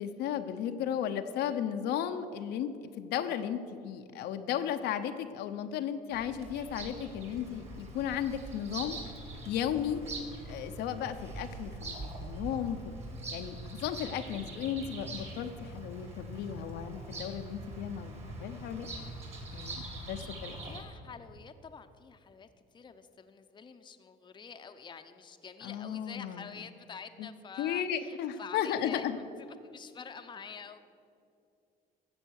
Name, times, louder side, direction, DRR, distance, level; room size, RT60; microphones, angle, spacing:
voice 1, 0.0-9.0 9.5-10.0 10.5-12.9 13.3-18.9 19.5-20.6 25.6-26.6 27.2-27.3 27.6-29.2, left 9 dB, 80° left, 7 dB, 0.7 m, -35 dB
Bird vocalization bird call bird song, 6.1-20.8, right 2 dB, 40° right, 2.7 m, -43 dB
voice 2, 19.9-22.5 22.7-29.1 29.4-30.8, left 6 dB, 25° left, 8 dB, 0.7 m, -48 dB
13.5 x 7.7 x 6.4 m, 2.5 s
cardioid pair, 110°, 17 cm